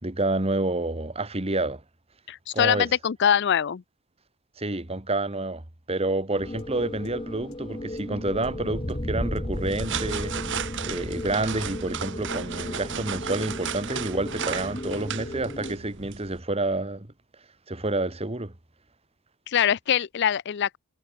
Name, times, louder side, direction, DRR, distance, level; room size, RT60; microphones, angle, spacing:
voice 1, 0.0-1.8 2.5-2.9 4.6-5.6 5.9-17.1 17.7-18.5, right 2 dB, 25° right, 1.7 m, -29 dB
voice 2, 2.3-3.8 19.5-20.8, left 9 dB, 50° left, 0.4 m, -23 dB
sound 1, 6.4-15.8, left 1 dB, 25° left, 1.4 m, -34 dB
sound 2, 6.6-6.7 7.0-7.1 7.5-7.6 8.0-8.1 8.4-8.5 8.9-9.0 9.4-9.5 9.8-9.9 10.3-10.4 10.7-10.8 11.2-11.3 11.7-11.8, left 14 dB, 85° left, 7.9 m, -60 dB
sound 3, 9.5-16.4, right 8 dB, 55° right, 1.1 m, -35 dB
head